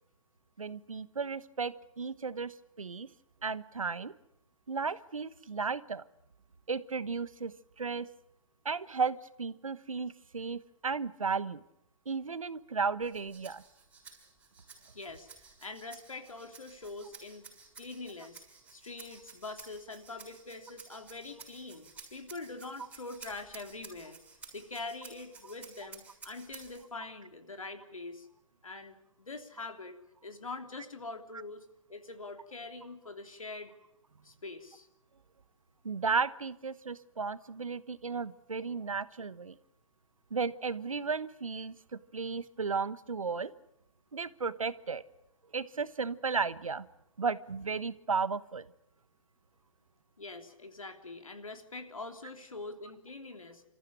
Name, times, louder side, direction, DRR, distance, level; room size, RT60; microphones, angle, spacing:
voice 1, 0.6-3.1 3.4-4.1 4.7-6.0 6.7-7.5 7.8-8.1 8.6-11.6 12.1-13.6 35.8-39.5 40.3-43.5 44.1-45.0 45.5-46.9 47.2-48.7, right 5 dB, 85° right, 16 dB, 1.2 m, -34 dB
Rattle (instrument), 13.0-26.8, right 5 dB, 10° right, 6.4 m, -53 dB
voice 2, 14.9-15.3 15.6-17.4 17.8-18.4 18.7-24.2 24.5-28.3 28.6-29.9 30.2-33.7 34.2-34.9 50.2-53.7, left 3 dB, 85° left, 6 dB, 3.4 m, -44 dB
27.0 x 14.5 x 10.0 m, 0.83 s
figure-of-eight pair, 125°, 17 cm